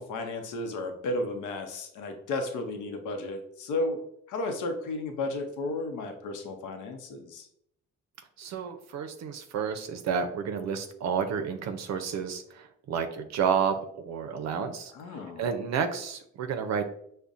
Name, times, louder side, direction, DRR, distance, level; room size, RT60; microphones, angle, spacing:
voice 1, 0.0-4.0 4.3-7.5 14.9-15.4, left 2 dB, 80° left, 5 dB, 0.7 m, -33 dB
voice 2, 8.4-16.9, right 7 dB, 60° right, 6 dB, 0.5 m, -31 dB
5.3 x 2.1 x 2.4 m, 0.70 s
cardioid pair, 90°, 30 cm